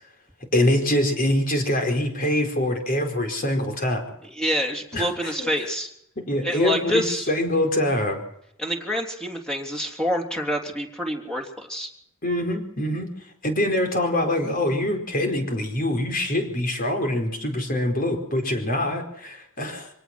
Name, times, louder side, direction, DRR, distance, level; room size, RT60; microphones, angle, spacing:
voice 1, 0.5-4.0 4.9-5.5 6.2-8.2 12.2-13.1 13.4-19.9, left 1 dB, 40° left, 4 dB, 4.7 m, -24 dB
voice 2, 4.2-5.9 6.4-7.3 8.6-11.9, equal, 5° left, -1 dB, 3.4 m, -27 dB
25.5 x 18.0 x 6.1 m, 0.75 s
head